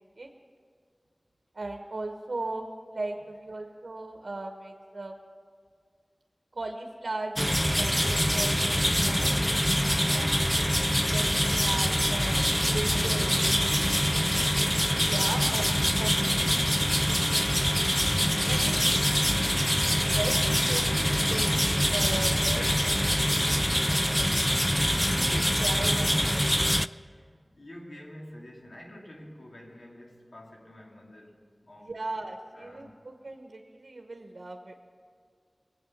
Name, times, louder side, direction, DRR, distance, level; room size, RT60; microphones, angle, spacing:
voice 1, 1.5-5.1 6.5-9.3 9.6-10.5 11.0-13.2 14.8-15.7 16.0-16.5 18.5-18.8 20.1-24.6 25.1-26.6 31.8-34.7, right 2 dB, 80° right, 3 dB, 1.0 m, -38 dB
sound 1, 7.4-26.9, equal, 5° left, 0.3 m, -25 dB
voice 2, 12.9-14.4 18.2-20.9 27.0-32.0 32.5-33.0, left 1 dB, 85° left, -1 dB, 2.4 m, -48 dB
21.5 x 8.6 x 7.2 m, 2.1 s
wide cardioid pair, 60°, 0 cm